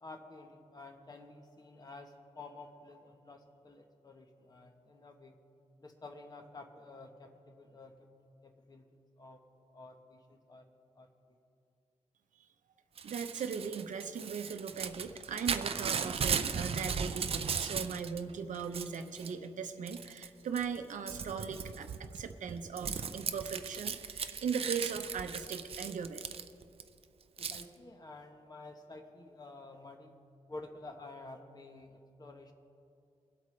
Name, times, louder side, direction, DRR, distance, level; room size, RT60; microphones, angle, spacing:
voice 1, 0.0-5.4 5.8-8.0 8.4-8.9 9.2-9.4 9.7-11.1 27.4-30.1 30.5-32.5, left 2 dB, 30° left, 4 dB, 1.0 m, -51 dB
Crumpling crinkling / Tearing, 13.0-18.2 18.5-19.3 19.9-20.3 20.6-26.8 27.4-27.6, right 6 dB, 50° right, 0.5 m, -37 dB
voice 2, 13.0-26.2, right 6 dB, 80° right, 8 dB, 0.8 m, -39 dB
23.5 x 8.4 x 3.2 m, 2.5 s
wide cardioid pair, 150°, 13 cm